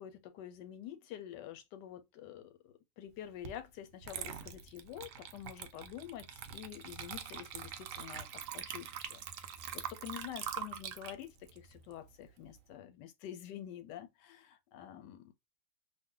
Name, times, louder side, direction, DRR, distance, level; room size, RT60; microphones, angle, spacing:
voice 1, 0.0-8.3 8.5-15.3, left 11 dB, 85° left, 1.3 m, -48 dB
Water / Liquid, 3.4-3.6 4.0-12.6, right 8 dB, 75° right, 0.7 m, -44 dB
2.7 x 2.1 x 3.7 m
omnidirectional pair, 1.8 m